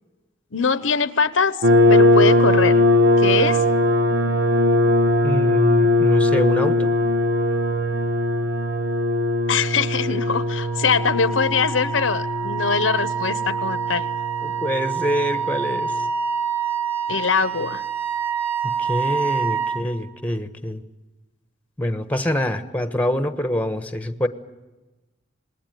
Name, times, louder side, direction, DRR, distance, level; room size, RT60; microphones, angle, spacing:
voice 1, 0.5-1.6 1.9-2.8 3.2-3.6 9.5-14.1 17.1-17.8, left 5 dB, 80° left, 14 dB, 0.9 m, -22 dB
sound 1, 1.6-16.1, left 1 dB, 75° right, 1.1 m, -20 dB
voice 2, 5.2-6.9 14.4-16.1 18.6-20.8 21.8-24.3, left 1 dB, 10° left, 9 dB, 1.1 m, -25 dB
Wind instrument woodwind instrument, 10.4-19.9, right 6 dB, 30° right, 2.4 m, -27 dB
27.0 x 20.0 x 9.3 m, 1.1 s
head